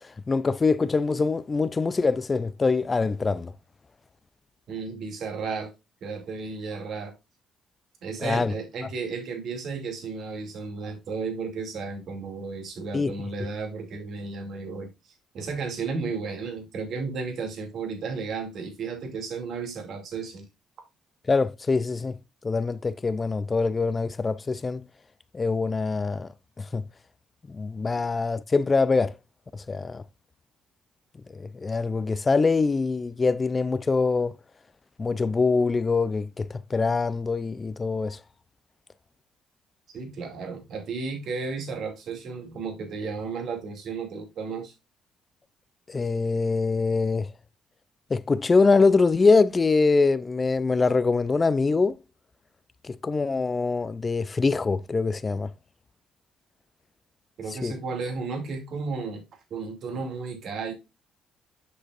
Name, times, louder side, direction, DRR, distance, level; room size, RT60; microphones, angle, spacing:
voice 1, 0.3-3.5 8.2-8.5 12.9-13.1 21.3-22.2 22.4-24.8 25.3-26.3 26.6-26.9 27.5-29.2 29.5-30.0 31.3-34.4 35.0-38.2 45.9-47.3 48.1-52.0 52.8-55.5 57.6-57.7, left 4 dB, 35° left, 0.5 m, -24 dB
voice 2, 4.7-5.7 6.0-7.1 8.0-14.9 15.3-20.4 39.9-44.7 57.4-59.2 59.5-60.7, right 4 dB, 65° right, 2.5 m, -33 dB
7.8 x 6.3 x 2.5 m
hypercardioid pair, 55°, 0 cm